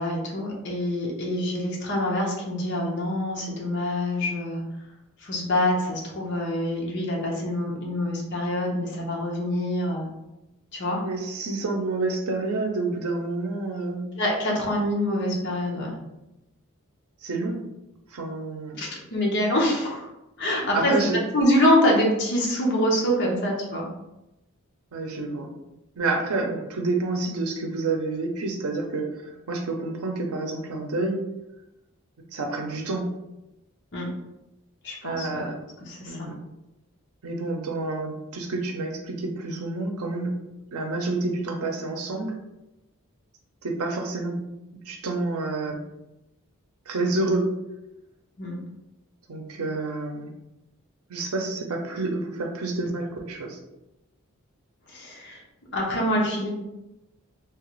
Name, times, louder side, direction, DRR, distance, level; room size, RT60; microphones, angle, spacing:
voice 1, 0.0-4.6 5.2-10.1 10.7-11.0 14.2-15.9 18.8-20.1 20.4-20.9 21.3-23.9 33.9-34.1 34.8-35.4 35.9-36.3 48.4-48.6 54.9-55.4 55.7-56.5, left 1 dB, 50° left, -2 dB, 0.8 m, -25 dB
voice 2, 11.0-14.1 17.2-17.6 18.1-18.8 20.7-21.2 24.9-25.5 26.0-31.2 32.3-33.1 35.0-35.6 36.1-36.3 37.2-40.3 40.7-42.3 43.6-44.4 44.9-45.8 46.9-47.5 49.3-50.3 51.1-53.6, right 3 dB, 85° right, 3 dB, 0.6 m, -28 dB
3.2 x 2.4 x 3.0 m, 0.93 s
head